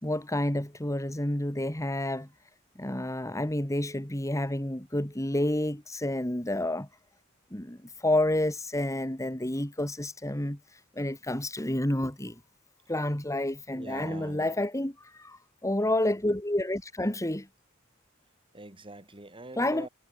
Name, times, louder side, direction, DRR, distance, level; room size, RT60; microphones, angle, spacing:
voice 1, 0.0-2.3 2.8-6.9 7.5-12.4 12.9-17.5 19.6-19.9, left 1 dB, 15° left, 2.5 m, -29 dB
voice 2, 13.7-14.6 18.5-19.9, right 2 dB, 25° right, 7.6 m, -43 dB
head